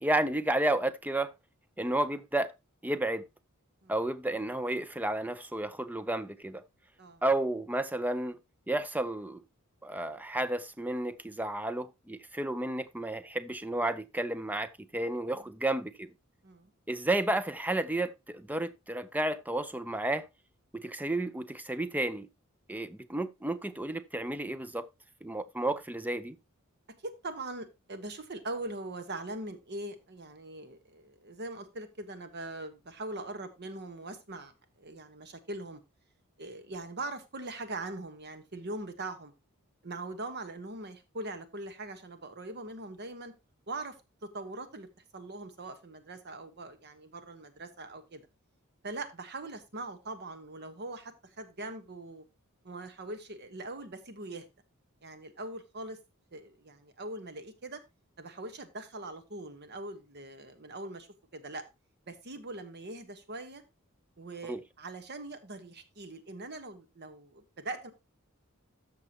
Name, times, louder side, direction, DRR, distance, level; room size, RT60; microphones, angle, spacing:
voice 1, 0.0-1.3 1.8-2.5 2.8-3.2 3.9-6.6 7.2-8.4 8.7-9.4 9.8-16.1 16.9-20.3 20.7-22.3 22.7-24.9 25.2-26.4 64.5-64.6, right 1 dB, 10° right, 0.5 m, -32 dB
voice 2, 27.0-34.5 34.8-35.8 36.4-39.3 39.8-43.3 43.7-43.9 44.2-44.9 45.1-48.3 48.8-52.2 52.6-54.5 55.0-56.0 56.3-57.8 58.2-61.1 61.3-61.6 62.1-63.6 64.2-67.9, right 2 dB, 50° right, 1.2 m, -41 dB
13.5 x 5.9 x 2.9 m
head